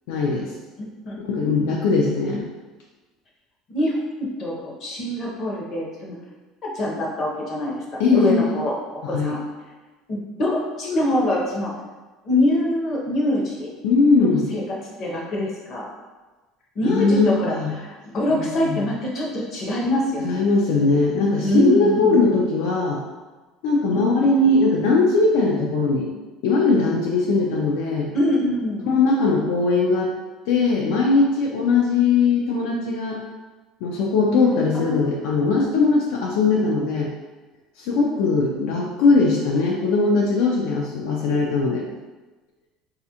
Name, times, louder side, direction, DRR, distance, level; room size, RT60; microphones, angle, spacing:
voice 1, 0.1-0.5 1.3-2.5 8.0-8.4 9.0-9.4 13.8-14.5 16.8-17.7 18.3-19.0 20.2-23.0 23.6-26.1 26.4-28.1 28.9-30.1 30.5-33.2 33.8-37.1 37.8-41.9, left 3 dB, 75° left, -2 dB, 0.4 m, -20 dB
voice 2, 0.8-1.2 3.7-4.0 4.4-6.2 6.7-7.8 8.1-8.7 9.0-9.4 10.1-11.7 12.2-13.7 14.2-14.6 15.0-15.9 16.8-20.5 20.9-21.0 21.4-22.2 23.9-24.1 28.1-28.9 34.7-35.1 35.4-35.5, left 1 dB, 35° left, -3 dB, 0.7 m, -24 dB
4.1 x 2.4 x 2.8 m, 1.2 s
cardioid pair, 170°, 0 cm